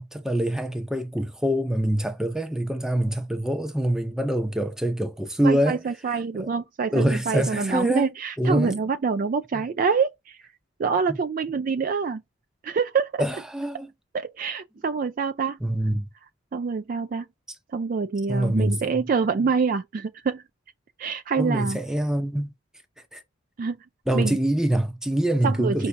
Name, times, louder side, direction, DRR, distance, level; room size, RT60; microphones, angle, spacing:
voice 1, 0.0-5.8 6.3-6.5 6.9-8.1 8.4-8.7 11.1-11.2 13.2-13.9 15.6-16.1 18.3-18.8 21.4-22.5 23.1-23.2 24.1-25.9, right 1 dB, 5° right, 0.6 m, -25 dB
voice 2, 5.4-10.4 10.8-12.2 12.6-13.2 14.1-15.6 16.5-17.3 17.7-20.4 21.0-21.8 23.6-23.8 24.1-24.4 25.4-25.9, right 5 dB, 40° right, 0.3 m, -26 dB
5.5 x 2.8 x 3.3 m
head